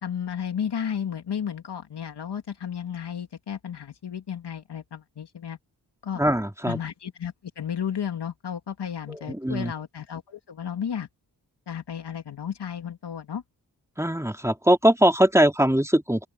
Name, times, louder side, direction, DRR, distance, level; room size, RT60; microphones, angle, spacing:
voice 1, 0.0-5.6 6.0-6.2 6.7-11.1 11.7-13.4, left 8 dB, 85° left, 2.7 m, -33 dB
voice 2, 6.2-6.8 9.1-9.7 14.0-16.3, equal, 5° right, 3.1 m, -21 dB
open air
cardioid pair, 55°, 39 cm